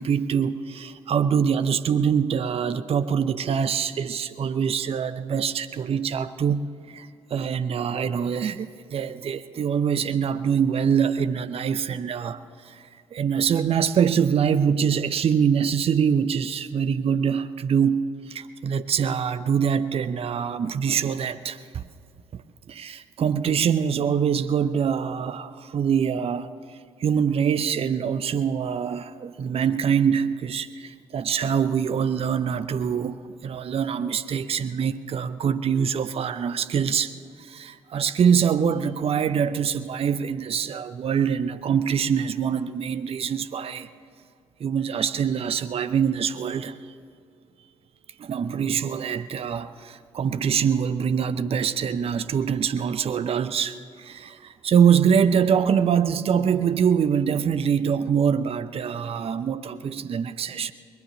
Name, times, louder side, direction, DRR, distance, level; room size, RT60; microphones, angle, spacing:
voice 1, 0.0-21.9 22.3-22.4 22.7-43.9 44.6-46.8 48.2-60.7, right 7 dB, 40° right, 13 dB, 0.6 m, -24 dB
20.5 x 9.4 x 7.0 m, 2.3 s
figure-of-eight pair, 40°, 15 cm